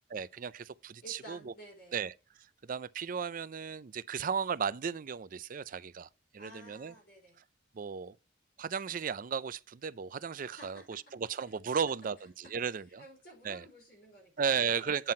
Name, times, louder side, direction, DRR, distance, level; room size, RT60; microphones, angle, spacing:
voice 1, 0.1-1.5 1.9-2.1 2.6-6.1 6.3-6.9 7.7-8.2 8.6-13.0 13.4-13.7 14.4-15.1, right 6 dB, 45° right, 0.4 m, -35 dB
voice 2, 1.0-2.0 6.4-7.4 10.4-11.0 11.4-11.6 12.4-12.5 13.0-15.1, equal, 55° left, 4.5 m, -53 dB
9.2 x 5.7 x 4.3 m
head